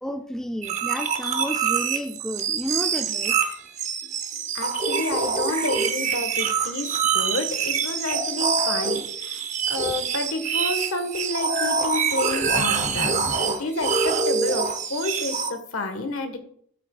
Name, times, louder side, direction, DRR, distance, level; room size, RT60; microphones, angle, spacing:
voice 1, 0.0-3.4, equal, 5° left, 6 dB, 0.4 m, -31 dB
sound 1, 0.6-15.5, right 6 dB, 35° right, 0.8 m, -25 dB
voice 2, 4.5-9.4 9.7-13.1 13.4-16.4, left 2 dB, 85° left, 7 dB, 1.4 m, -30 dB
12.0 x 7.8 x 2.4 m, 0.63 s
head